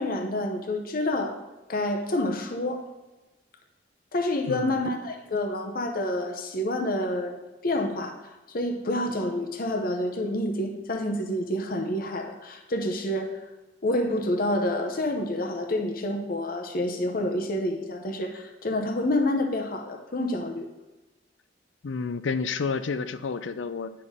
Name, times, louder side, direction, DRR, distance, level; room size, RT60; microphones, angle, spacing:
voice 1, 0.0-1.4 1.7-2.8 4.1-7.4 7.6-13.4 13.8-20.7, left 1 dB, 50° left, 4 dB, 0.8 m, -28 dB
voice 2, 4.5-4.9 21.8-23.9, left 4 dB, 85° left, 12 dB, 0.5 m, -30 dB
10.0 x 5.7 x 3.7 m, 1.1 s
head